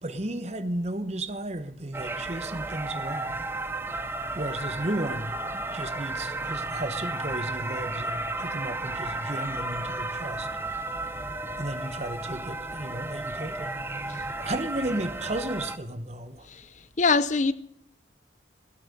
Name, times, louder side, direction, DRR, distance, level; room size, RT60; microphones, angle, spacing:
voice 1, 0.0-3.4 4.3-10.5 11.6-13.7 14.0-16.5, right 1 dB, 35° right, 1.1 m, -34 dB
sound 1, 1.9-15.8, right 2 dB, 10° right, 0.7 m, -33 dB
voice 2, 17.0-17.5, left 4 dB, 40° left, 0.6 m, -24 dB
16.5 x 9.1 x 9.7 m
head